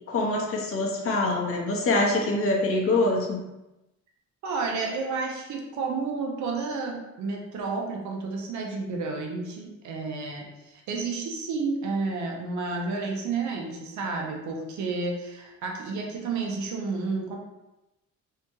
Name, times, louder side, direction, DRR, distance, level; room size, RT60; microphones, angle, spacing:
voice 1, 0.1-3.4, left 2 dB, 45° left, -1 dB, 0.7 m, -24 dB
voice 2, 4.4-17.4, right 4 dB, 75° right, 1 dB, 0.7 m, -31 dB
2.7 x 2.2 x 3.0 m, 0.97 s
cardioid pair, 90°, 30 cm